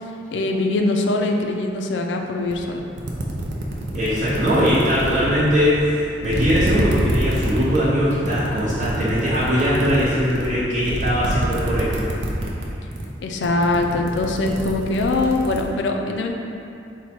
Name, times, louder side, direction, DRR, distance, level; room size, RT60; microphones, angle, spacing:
voice 1, 0.3-2.8 13.2-16.3, left 2 dB, 85° left, 2 dB, 0.4 m, -22 dB
sound 1, 2.5-2.6 2.9-5.9 6.2-12.7 12.9-13.2 13.4-15.6, right 1 dB, 85° right, 0.5 m, -27 dB
voice 2, 3.9-12.1, equal, 45° right, -9 dB, 0.6 m, -20 dB
4.5 x 2.2 x 4.2 m, 2.6 s
head